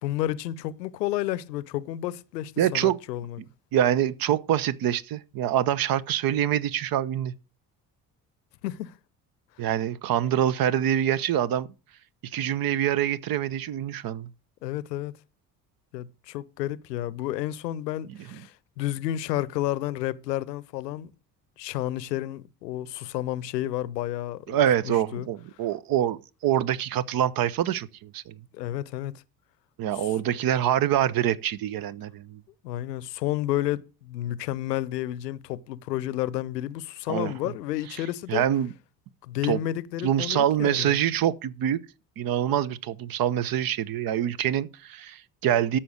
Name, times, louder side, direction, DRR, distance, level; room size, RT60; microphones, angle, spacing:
voice 1, 0.0-3.4 8.6-8.9 14.6-15.1 15.9-21.1 21.6-24.6 24.8-25.3 28.5-29.1 29.9-30.1 32.6-38.5 39.2-41.0, left 14 dB, 75° left, 0.7 m, -31 dB
voice 2, 2.6-3.0 3.7-7.3 9.6-11.7 12.3-14.3 18.1-18.2 24.5-28.4 29.8-32.4 37.1-37.3 38.3-38.7 39.4-39.6 40.0-41.8 42.2-45.8, right 11 dB, 45° right, 0.8 m, -25 dB
13.0 x 5.8 x 6.3 m
figure-of-eight pair, 50°, 49 cm